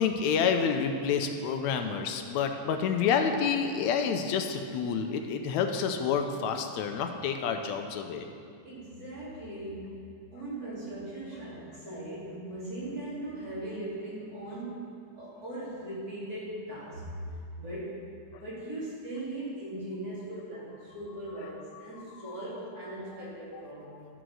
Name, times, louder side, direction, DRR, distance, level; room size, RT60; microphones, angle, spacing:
voice 1, 0.0-8.3 22.3-22.4, left 6 dB, 80° left, 5 dB, 1.9 m, -28 dB
voice 2, 8.6-17.1 17.6-18.0 18.4-24.1, right 1 dB, 30° right, -9 dB, 2.9 m, -39 dB
11.5 x 5.1 x 6.3 m, 2.3 s
omnidirectional pair, 3.4 m